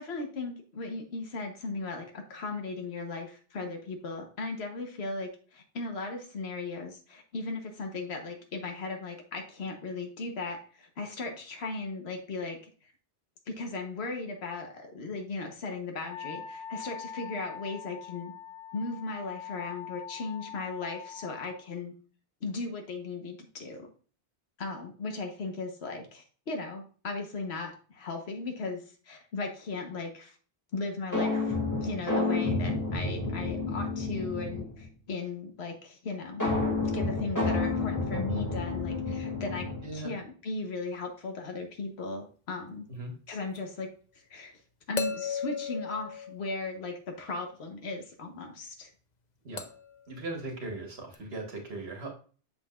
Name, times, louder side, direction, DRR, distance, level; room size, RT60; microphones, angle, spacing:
voice 1, 0.0-12.6 13.5-18.3 18.7-21.9 22.4-23.9 24.6-30.3 30.7-36.5 36.8-42.9 43.3-43.9 44.3-44.5 44.9-48.9, left 3 dB, 70° left, 3 dB, 1.4 m, -37 dB
Wind instrument woodwind instrument, 16.0-21.6, left 8 dB, 90° left, 1.7 m, -43 dB
sound 1, 31.1-34.9 36.4-40.0, left 3 dB, 15° left, 2.4 m, -30 dB
sound 2, 43.6-43.7 45.0-47.0 49.6-50.0 51.1-51.2, left 7 dB, 45° left, 0.8 m, -36 dB
voice 2, 50.1-52.1, right 2 dB, 65° right, 2 dB, 1.7 m, -38 dB
7.4 x 6.7 x 2.5 m, 0.41 s
omnidirectional pair, 1.1 m